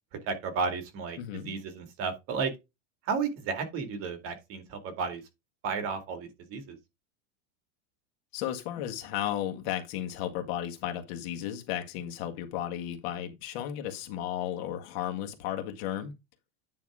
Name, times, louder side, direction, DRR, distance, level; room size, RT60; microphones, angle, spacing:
voice 1, 0.1-1.2 1.4-2.5 3.0-5.2 5.6-6.8, right 5 dB, 40° right, 2.3 m, -33 dB
voice 2, 1.2-1.5 8.3-16.2, left 11 dB, 55° left, 1.8 m, -34 dB
9.7 x 3.5 x 4.9 m
supercardioid pair, 155°, 35 cm